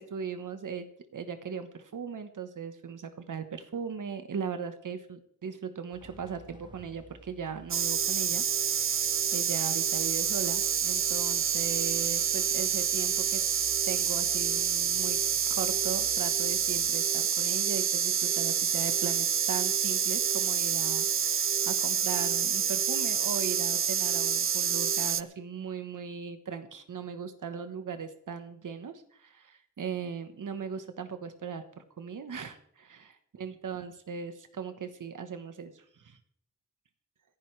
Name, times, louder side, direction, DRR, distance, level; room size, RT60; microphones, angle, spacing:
voice 1, 0.0-13.4 13.8-15.2 15.5-36.2, right 6 dB, 80° right, 9 dB, 1.2 m, -38 dB
sound 1, 5.9-16.9, right 1 dB, 15° right, 1.0 m, -54 dB
sound 2, 7.7-25.2, right 8 dB, 45° right, 0.4 m, -28 dB
26.5 x 10.5 x 3.3 m, 0.67 s
wide cardioid pair, 80°, 31 cm